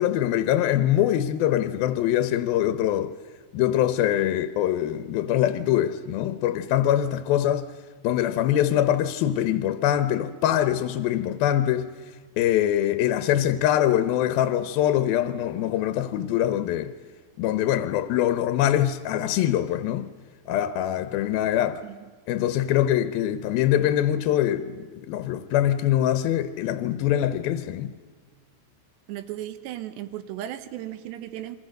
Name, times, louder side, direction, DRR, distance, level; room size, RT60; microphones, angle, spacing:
voice 1, 0.0-3.1 3.5-7.7 8.0-11.9 12.4-16.9 17.4-20.1 20.5-21.8 22.3-27.9, left 11 dB, 75° left, 2.4 m, -23 dB
voice 2, 29.1-31.6, right 12 dB, 85° right, 3.3 m, -35 dB
28.5 x 22.5 x 6.6 m
omnidirectional pair, 4.9 m